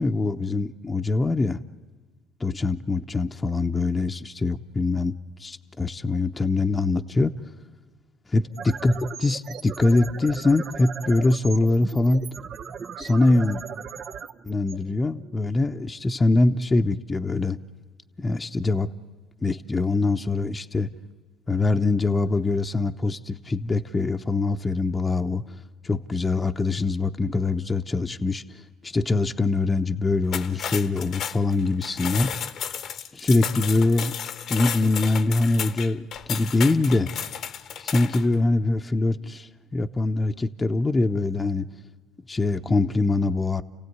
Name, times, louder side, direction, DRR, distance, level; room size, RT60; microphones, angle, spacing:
voice 1, 0.0-1.6 2.4-7.3 8.3-12.2 13.0-13.6 14.5-17.6 18.2-18.9 19.4-20.9 21.5-25.4 25.8-28.4 28.8-32.3 33.1-34.1 34.5-37.1 37.8-41.7 42.3-43.6, left 2 dB, 25° left, 6 dB, 0.8 m, -23 dB
sound 1, 8.4-15.5, right 7 dB, 50° right, 0.7 m, -38 dB
sound 2, 30.2-38.3, left 8 dB, 60° left, 1.0 m, -33 dB
29.5 x 16.0 x 9.5 m, 1.5 s
supercardioid pair, 70°, 0 cm